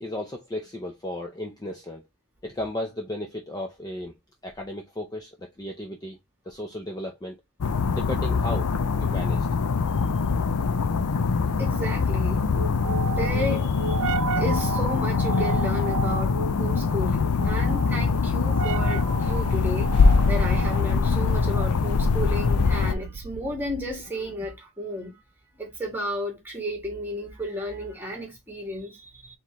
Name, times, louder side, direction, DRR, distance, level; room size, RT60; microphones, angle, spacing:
voice 1, 0.0-2.1 2.4-4.2 4.4-6.2 6.5-7.4 7.9-8.7 9.0-9.5 23.1-23.2, left 1 dB, 15° left, 0.6 m, -35 dB
sound 1, 7.6-23.0, left 4 dB, 80° left, 0.5 m, -23 dB
sound 2, 10.8-24.1, right 6 dB, 85° right, 0.4 m, -34 dB
voice 2, 11.6-12.4 13.1-25.1 25.6-29.3, equal, 10° right, 1.8 m, -33 dB
4.3 x 3.7 x 3.0 m
head